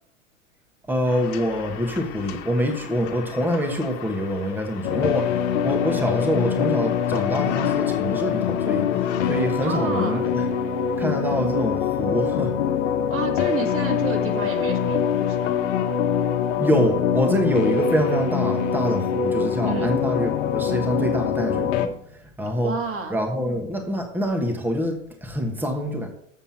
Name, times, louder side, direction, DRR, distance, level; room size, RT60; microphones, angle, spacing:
voice 1, 0.9-10.5 11.0-12.6 16.6-22.7 23.1-26.1, equal, 5° right, 3 dB, 1.3 m, -25 dB
sound 1, 1.1-9.5, left 10 dB, 45° left, 1.5 m, -39 dB
sound 2, 4.8-21.9, left 8 dB, 65° left, 1.1 m, -24 dB
voice 2, 9.6-10.2 13.1-15.4 19.6-20.0 22.6-23.2, right 4 dB, 35° right, 4 dB, 2.0 m, -30 dB
7.6 x 6.9 x 5.8 m, 0.70 s
hypercardioid pair, 100°, 39 cm